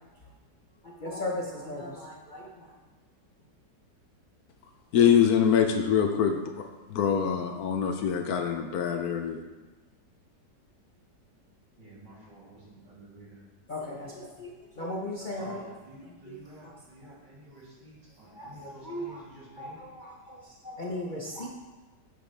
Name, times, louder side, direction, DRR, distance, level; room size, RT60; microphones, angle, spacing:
voice 1, 0.8-2.7 13.7-15.6 16.0-16.7 17.0-17.1 18.4-19.2 19.6-21.5, left 1 dB, 40° left, -3 dB, 0.7 m, -37 dB
voice 2, 4.9-9.4, left 8 dB, 70° left, 5 dB, 1.0 m, -24 dB
voice 3, 11.8-13.4 15.4-19.8, right 1 dB, 90° right, -8 dB, 3.7 m, -50 dB
8.9 x 7.9 x 3.3 m, 1.2 s
omnidirectional pair, 1.9 m